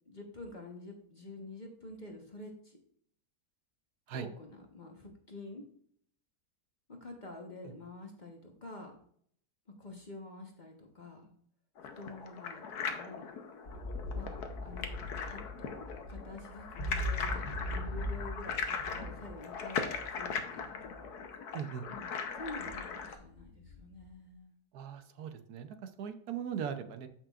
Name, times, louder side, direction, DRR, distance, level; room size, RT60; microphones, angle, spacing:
voice 1, 0.1-2.8 4.1-5.6 6.9-8.9 9.8-11.3 12.0-13.3 14.1-15.8 16.1-20.7 21.9-22.1 22.3-24.6, left 2 dB, 30° left, 1 dB, 1.2 m, -48 dB
sound 1, 11.8-23.2, left 6 dB, 85° left, 1.4 m, -39 dB
sound 2, 13.7-21.2 21.9-22.0 22.4-24.1, left 1 dB, 55° left, 1.7 m, -41 dB
voice 2, 21.5-21.9 24.7-27.1, right 8 dB, 80° right, 8 dB, 1.3 m, -39 dB
13.5 x 5.9 x 2.4 m, 0.63 s
omnidirectional pair, 1.6 m